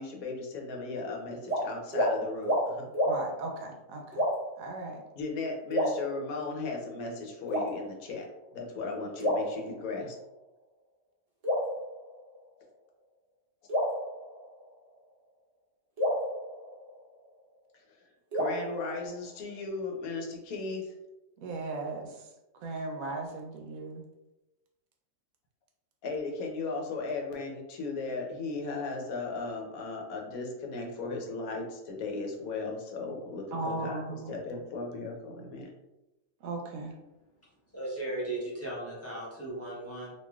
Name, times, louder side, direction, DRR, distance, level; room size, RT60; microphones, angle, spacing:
voice 1, 0.0-2.9 5.1-8.3 8.5-10.2 17.9-18.0 18.3-21.0 26.0-35.7, left 3 dB, 85° left, 0 dB, 1.1 m, -36 dB
sound 1, 1.4-1.6 1.9-2.1 2.4-2.6 2.9-3.1 4.1-4.6 5.7-6.6 7.5-8.2 9.2-10.2 11.4-12.6 13.7-14.9 16.0-17.4 18.3-19.5, equal, 35° right, 0.8 m, -31 dB
voice 2, 3.0-4.2 4.6-5.0 21.4-22.1 22.6-24.0 33.5-34.3 36.4-36.9, right 2 dB, 75° right, 2 dB, 1.0 m, -36 dB
voice 3, 37.7-40.1, right 2 dB, 15° left, -6 dB, 0.5 m, -36 dB
3.1 x 2.6 x 2.3 m, 0.98 s
omnidirectional pair, 1.5 m